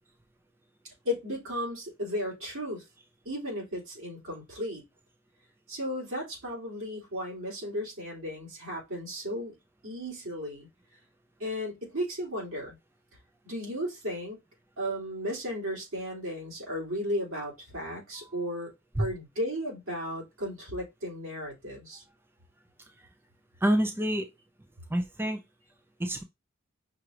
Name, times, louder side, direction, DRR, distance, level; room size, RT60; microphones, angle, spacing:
voice 1, 1.0-2.8 3.2-4.8 5.7-9.5 9.8-10.7 11.4-12.8 13.4-14.4 14.8-18.7 19.0-22.0, equal, 75° right, 2.9 m, -35 dB
voice 2, 23.6-24.3 24.9-25.4 26.0-26.2, right 1 dB, 10° right, 0.4 m, -27 dB
5.7 x 2.5 x 3.1 m
head